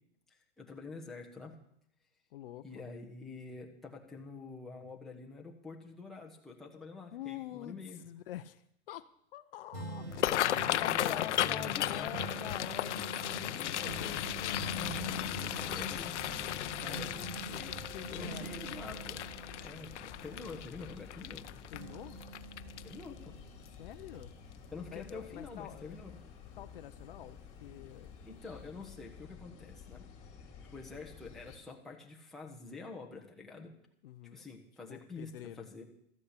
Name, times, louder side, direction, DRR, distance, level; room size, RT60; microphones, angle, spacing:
voice 1, 0.3-1.5 2.6-8.0 10.5-12.1 15.3-16.2 16.5-17.1 17.4-17.7 18.1-19.2 19.5-21.6 22.8-23.4 24.7-26.1 28.2-30.0 30.7-33.7 34.3-35.8, left 4 dB, ahead, -1 dB, 1.0 m, -47 dB
voice 2, 2.3-2.8 7.1-9.1 9.3-10.1 10.7-14.7 16.5-17.1 17.5-18.9 21.7-22.2 23.8-24.4 24.9-26.0 26.6-28.1 34.0-34.4 34.9-35.7, left 13 dB, 55° left, 12 dB, 0.7 m, -46 dB
sound 1, 9.7-21.4 21.7-23.6 24.1-24.2, right 3 dB, 45° right, 3.9 m, -45 dB
sound 2, 10.1-23.2 23.7-23.9 24.3-24.7 25.1-25.2 26.5-26.7 27.0-27.1 27.6-27.7, left 12 dB, 90° left, 0.7 m, -36 dB
sound 3, 13.9-31.6, left 6 dB, 20° left, 2.7 m, -52 dB
13.5 x 8.6 x 8.2 m, 0.71 s
supercardioid pair, 165°, 34 cm